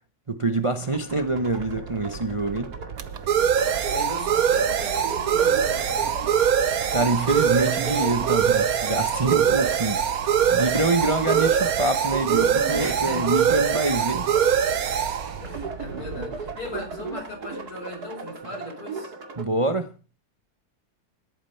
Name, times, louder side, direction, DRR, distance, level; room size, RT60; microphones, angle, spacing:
voice 1, 0.3-2.8 6.9-10.0 10.5-14.3 19.4-19.9, right 2 dB, 25° right, 0.8 m, -25 dB
sound 1, 0.8-19.4, right 3 dB, 85° right, 2.8 m, -37 dB
sound 2, 1.4-16.8, right 8 dB, 70° right, 1.5 m, -23 dB
voice 2, 3.9-5.9 12.8-13.3 15.4-19.1, left 2 dB, 75° left, 6.1 m, -37 dB
18.0 x 8.8 x 5.7 m
omnidirectional pair, 1.6 m